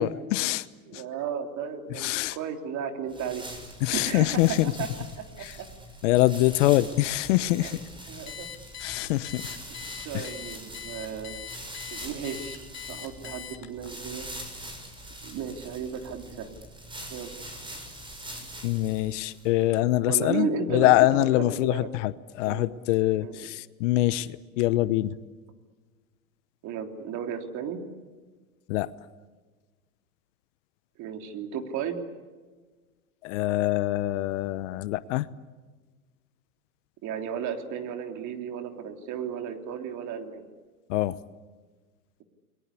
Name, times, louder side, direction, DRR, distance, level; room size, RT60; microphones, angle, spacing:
voice 1, 0.0-0.7 0.9-1.0 1.9-2.4 3.8-4.7 5.4-5.6 6.0-7.9 8.8-9.6 10.1-10.3 18.6-25.2 28.7-28.9 33.2-35.3 40.9-41.2, left 16 dB, 55° left, 17 dB, 1.0 m, -24 dB
voice 2, 0.9-3.4 3.9-4.4 4.8-4.9 5.2-5.7 7.6-7.8 8.1-8.5 10.1-11.4 11.9-14.3 15.2-16.5 17.1-17.3 20.1-20.9 21.4-21.9 22.4-22.6 23.2-23.4 26.6-27.8 31.0-32.0 37.0-40.4, right 7 dB, 40° right, 5 dB, 3.4 m, -34 dB
sound 1, 3.1-19.6, right 1 dB, 10° right, 6.2 m, -43 dB
Alarm, 8.3-13.9, left 9 dB, 35° left, 2.9 m, -41 dB
29.5 x 22.0 x 8.4 m, 1.4 s
hypercardioid pair, 105°, 45 cm